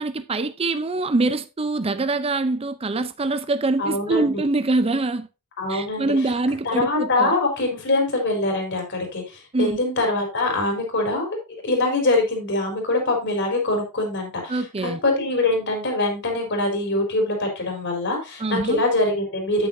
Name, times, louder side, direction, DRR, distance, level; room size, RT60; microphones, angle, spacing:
voice 1, 0.0-5.3 5.7-7.3 9.5-9.8 14.5-15.0 18.4-18.8, right 2 dB, 25° right, 0.6 m, -24 dB
voice 2, 3.8-4.4 5.6-6.1 6.6-11.4 11.6-19.7, left 2 dB, 55° left, 4.1 m, -23 dB
8.9 x 8.9 x 2.7 m
head